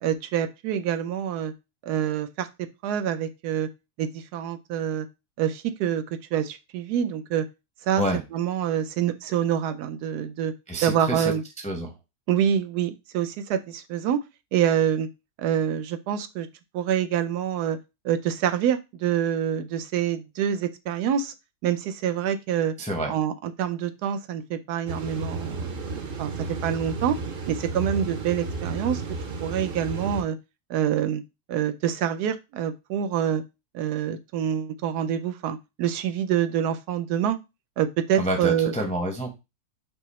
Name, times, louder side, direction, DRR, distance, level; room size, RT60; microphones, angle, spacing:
voice 1, 0.0-1.5 1.8-2.5 2.8-3.7 4.0-5.1 5.4-6.0 6.3-7.5 7.9-8.0 8.3-10.5 10.8-11.4 12.3-14.2 14.5-15.1 15.4-16.5 16.7-17.8 18.0-21.3 21.6-22.7 23.1-27.2 27.5-29.0 29.4-30.4 30.7-31.2 31.5-33.4 33.7-37.4 37.8-38.7, right 9 dB, 90° right, 9 dB, 1.1 m, -26 dB
voice 2, 10.7-11.9 22.8-23.1 38.2-39.3, right 1 dB, 10° left, 2 dB, 0.5 m, -28 dB
sound 1, 24.9-30.2, right 3 dB, 50° right, 0.7 m, -32 dB
5.6 x 2.0 x 4.1 m, 0.25 s
omnidirectional pair, 1.7 m